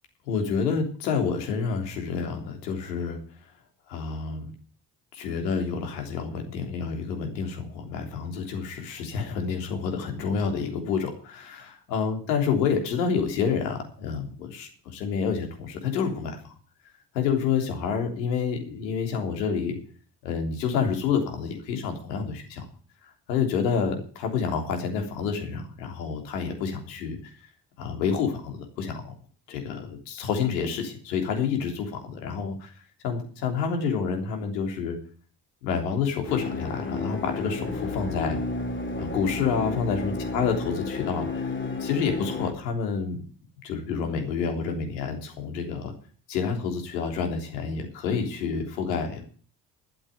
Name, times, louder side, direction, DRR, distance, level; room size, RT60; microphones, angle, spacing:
voice 1, 0.3-3.2 3.9-4.5 5.1-16.5 17.1-19.8 20.2-22.6 23.3-27.2 27.8-29.1 29.5-32.7 33.0-35.0 35.6-38.4 39.0-41.5 41.8-43.2 43.6-45.9 46.3-49.2, left 6 dB, 80° left, 4 dB, 3.5 m, -28 dB
sound 1, 36.3-42.5, left 3 dB, 25° left, 2.9 m, -32 dB
12.5 x 7.8 x 9.2 m, 0.43 s
hypercardioid pair, 55°, 49 cm